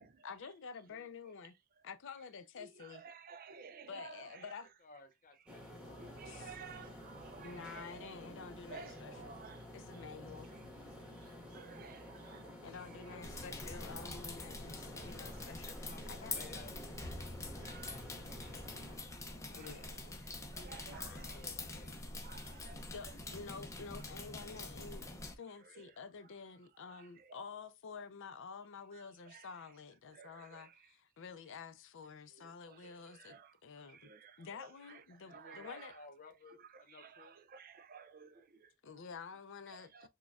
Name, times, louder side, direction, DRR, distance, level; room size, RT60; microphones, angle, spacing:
voice 1, 0.2-1.5 1.8-3.0 3.9-4.7 6.2-6.6 7.4-9.3 9.7-10.5 12.6-16.5 19.5-20.2 20.8-21.4 22.5-25.1 25.4-34.1 34.4-35.9 38.8-40.1, left 5 dB, 60° left, 0.5 m, -50 dB
voice 2, 2.8-4.4 5.9-8.0 8.7-9.6 9.9-10.0 10.5-10.6 11.5-12.5 14.9-15.4 17.6-18.0 19.5-19.9 20.5-21.4 22.2-22.8 25.8-25.9 26.9-27.4 29.3-29.5 30.1-30.7 32.4-33.5 33.9-35.0 35.3-35.9 37.0-38.7 39.9-40.1, right 6 dB, 45° right, 0.4 m, -54 dB
voice 3, 4.8-6.5 15.5-19.2 20.9-22.2 35.1-37.4, left 3 dB, 40° left, 0.9 m, -59 dB
sound 1, 5.5-19.0, left 1 dB, 5° right, 1.2 m, -51 dB
sound 2, 13.2-25.3, left 2 dB, 15° left, 0.6 m, -45 dB
6.1 x 2.3 x 2.3 m
head